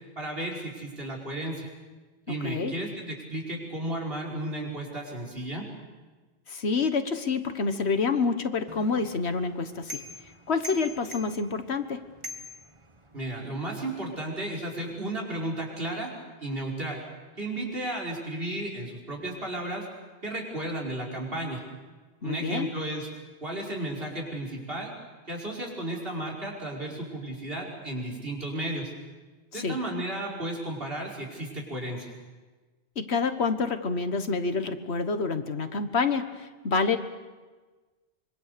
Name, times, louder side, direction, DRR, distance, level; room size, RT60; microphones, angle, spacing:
voice 1, 0.2-1.7 2.3-5.7 13.1-16.1 16.4-17.0 17.4-19.9 20.2-21.6 22.2-23.1 23.4-24.9 25.3-28.9 29.5-32.1, right 1 dB, 60° right, -1 dB, 5.3 m, -33 dB
voice 2, 2.3-2.7 6.5-10.0 10.5-12.0 22.2-22.7 29.5-29.8 33.0-37.0, left 4 dB, 70° left, 9 dB, 1.6 m, -28 dB
sound 1, 8.7-13.4, left 1 dB, 25° right, 1.7 m, -44 dB
25.5 x 24.0 x 6.8 m, 1.3 s
omnidirectional pair, 1.1 m